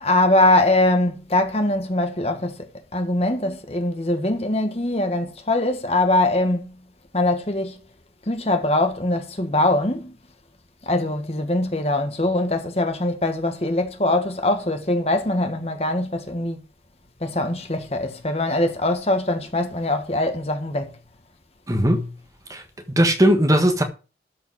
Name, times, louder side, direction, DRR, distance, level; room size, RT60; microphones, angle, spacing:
voice 1, 0.0-6.7 7.1-7.7 8.3-10.1 10.9-16.6 17.2-20.9, left 1 dB, 35° left, 1.6 m, -22 dB
voice 2, 21.7-22.1 22.5-23.8, equal, 20° right, 1.5 m, -19 dB
13.0 x 5.1 x 6.3 m
head